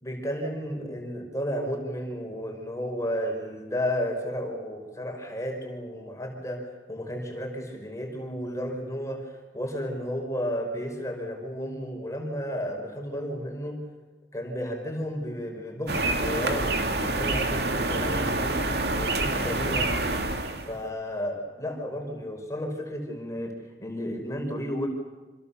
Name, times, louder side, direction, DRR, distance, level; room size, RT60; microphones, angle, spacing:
voice 1, 0.0-13.8 14.3-16.7 17.0-18.7 19.0-19.9 20.7-23.5 23.8-24.9, equal, 15° left, 2 dB, 4.9 m, -33 dB
sound 1, 15.9-20.8, right 2 dB, 65° right, 2.6 m, -27 dB
28.5 x 26.5 x 7.0 m, 1.2 s
head